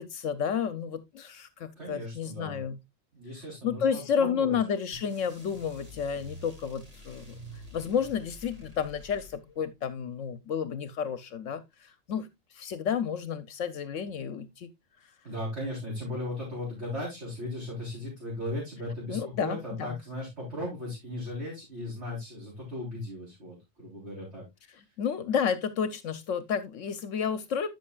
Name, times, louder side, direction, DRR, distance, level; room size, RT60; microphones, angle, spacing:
voice 1, 0.0-2.8 3.6-7.4 7.7-12.3 12.5-14.7 19.1-20.0 25.0-27.7, left 7 dB, 75° left, 1.0 m, -31 dB
voice 2, 1.8-2.6 3.1-4.6 15.2-24.5, left 1 dB, 55° right, 4.1 m, -37 dB
sound 1, 4.9-9.7, equal, 30° right, 2.1 m, -48 dB
13.0 x 6.1 x 2.3 m
omnidirectional pair, 1.3 m